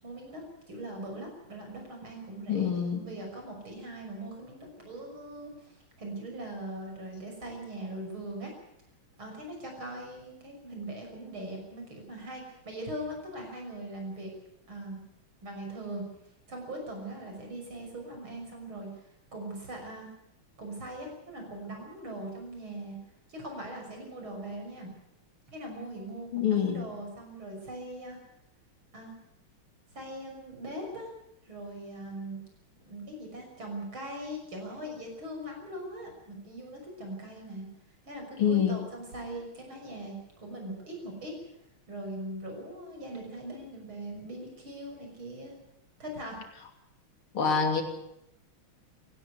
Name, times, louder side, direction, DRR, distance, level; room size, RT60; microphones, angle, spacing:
voice 1, 0.0-8.5 9.2-14.3 14.7-15.0 15.4-16.0 16.5-18.9 19.3-20.1 20.6-23.0 23.3-24.9 25.5-28.2 28.9-29.1 29.9-31.1 31.5-32.4 32.8-37.7 38.1-41.3 41.9-45.5 46.0-46.4, right 1 dB, 75° right, 2 dB, 7.1 m, -41 dB
voice 2, 2.5-3.1 26.3-26.9 38.4-38.8 47.3-47.8, left 7 dB, 90° left, 4 dB, 3.8 m, -26 dB
18.5 x 16.0 x 9.5 m, 0.80 s
omnidirectional pair, 2.2 m